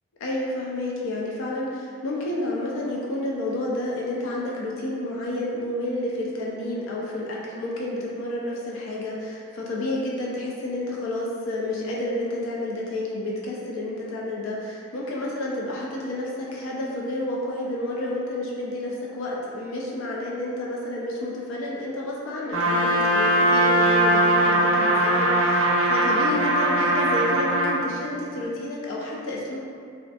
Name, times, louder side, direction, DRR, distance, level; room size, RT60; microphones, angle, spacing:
voice 1, 0.2-29.6, left 1 dB, 70° left, -4 dB, 0.3 m, -30 dB
Trumpet, 22.5-27.8, right 1 dB, 75° right, 0.4 m, -20 dB
2.5 x 2.4 x 2.2 m, 2.3 s
head